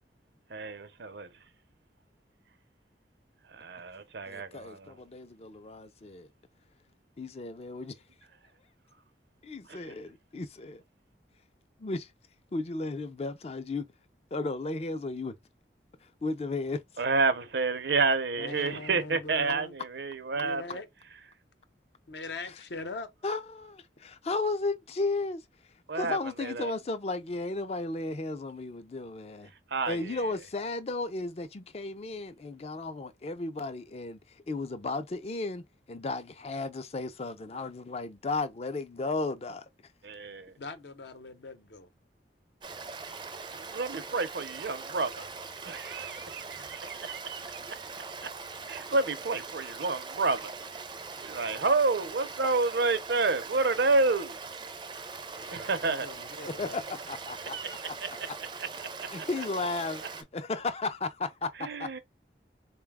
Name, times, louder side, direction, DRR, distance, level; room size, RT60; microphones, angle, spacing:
voice 1, 0.5-1.3 3.5-5.0 9.7-9.8 17.0-20.8 25.9-26.7 29.7-30.3 40.0-40.5 43.5-45.3 45.6-48.3 48.7-50.5 51.2-54.4 55.5-56.1 57.5-57.8 58.6-59.1 61.6-62.0, right 3 dB, 70° right, 0.6 m, -30 dB
voice 2, 4.3-6.3 7.2-8.0 9.4-10.8 11.8-12.1 12.5-13.9 14.3-15.3 16.2-16.8 23.2-25.4 25.9-29.5 29.9-39.6 56.5-57.6 57.9-58.0 59.1-62.0, left 3 dB, 35° left, 0.4 m, -34 dB
voice 3, 18.4-19.7 20.3-20.9 22.1-23.1 40.6-41.9 55.3-56.8, left 3 dB, 75° left, 0.7 m, -41 dB
Stream, 42.6-60.2, right 4 dB, 25° right, 0.4 m, -42 dB
3.9 x 2.2 x 3.4 m
head